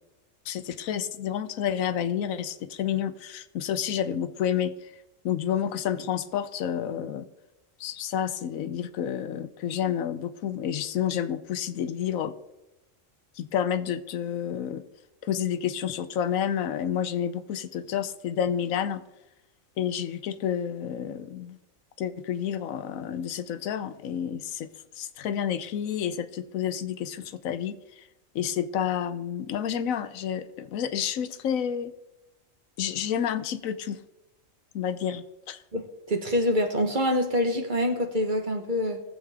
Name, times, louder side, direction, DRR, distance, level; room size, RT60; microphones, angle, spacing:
voice 1, 0.5-4.7 5.2-7.3 7.8-12.3 13.4-14.8 15.2-19.0 19.8-21.6 22.0-24.7 25.0-27.8 28.3-31.9 32.8-34.0 34.7-35.6, left 9 dB, 90° left, 13 dB, 1.1 m, -29 dB
voice 2, 35.7-39.0, left 1 dB, 40° right, 5 dB, 1.3 m, -26 dB
18.5 x 7.6 x 3.6 m, 0.96 s
omnidirectional pair, 1.4 m